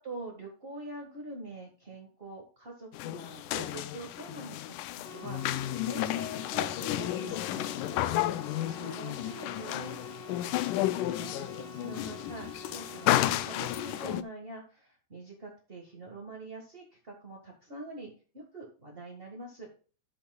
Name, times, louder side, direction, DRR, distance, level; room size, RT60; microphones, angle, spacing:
voice 1, 0.0-4.6 4.9-8.2 8.5-10.0 11.0-19.7, right 2 dB, 30° right, -1 dB, 1.0 m, -45 dB
sound 1, 2.9-14.2, left 14 dB, 80° left, 2.0 m, -32 dB
sound 2, 5.0-14.0, left 1 dB, 55° left, 1.1 m, -47 dB
12.0 x 8.3 x 2.3 m, 0.38 s
omnidirectional pair, 3.8 m